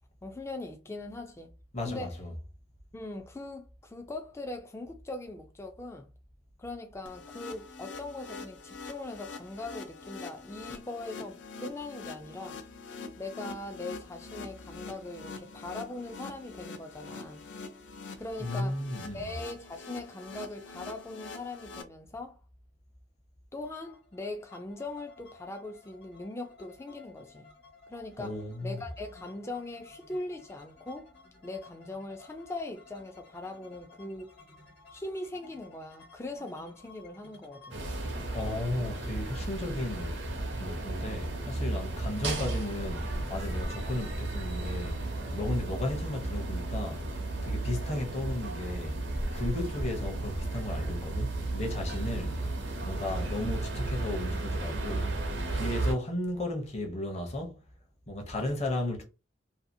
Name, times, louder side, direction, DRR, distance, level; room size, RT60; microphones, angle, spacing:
voice 1, 0.2-1.5 1.8-2.2 2.9-6.1 6.6-12.6 13.2-17.5 18.2-18.8 19.1-22.4 23.5-27.5 27.9-31.1 31.4-34.3 34.9-37.9, left 2 dB, 15° left, 0.3 m, -40 dB
voice 2, 1.7-2.3 18.4-19.3 28.2-28.8 38.3-40.2 40.6-47.1 47.4-49.0 49.3-52.4 52.8-55.1 55.5-57.6 58.1-59.0, left 1 dB, 35° left, 0.7 m, -34 dB
sound 1, 7.1-21.8, left 4 dB, 80° left, 0.5 m, -44 dB
sound 2, 23.6-41.3, left 3 dB, 60° left, 1.2 m, -56 dB
sound 3, 37.7-55.9, right 2 dB, 75° right, 0.7 m, -34 dB
2.7 x 2.4 x 2.6 m
head